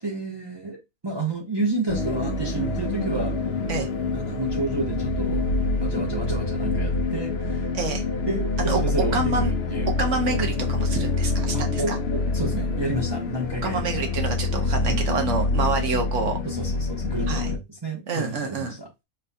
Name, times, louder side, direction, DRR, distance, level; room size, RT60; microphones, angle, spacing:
voice 1, 0.0-3.4 4.1-5.5 5.8-7.7 8.3-9.9 11.5-13.8 14.8-15.0 16.4-18.9, right 2 dB, 40° right, 0.3 m, -30 dB
sound 1, 1.9-17.6, left 3 dB, 70° left, 0.6 m, -26 dB
voice 2, 9.1-9.5 10.0-12.0 13.6-16.4 17.3-17.5 18.1-18.8, right 4 dB, 60° right, 1.0 m, -27 dB
4.3 x 2.2 x 2.6 m
omnidirectional pair, 1.6 m